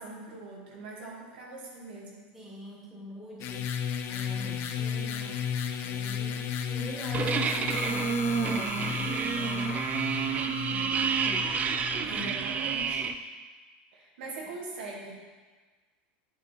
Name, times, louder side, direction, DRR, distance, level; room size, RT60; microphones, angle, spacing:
voice 1, 0.0-2.3 12.1-13.2 13.9-15.1, right 2 dB, 85° right, -3 dB, 2.2 m, -42 dB
voice 2, 2.3-3.7 4.1-5.4 5.8-9.7 10.3-11.2 12.0-12.3 14.0-14.1, right 1 dB, 5° right, -6 dB, 2.7 m, -44 dB
sound 1, 3.4-12.1, left 7 dB, 45° left, 0.7 m, -34 dB
sound 2, 7.1-13.1, right 6 dB, 30° right, 0.5 m, -29 dB
8.7 x 6.4 x 4.5 m, 1.4 s
supercardioid pair, 125°, 5 cm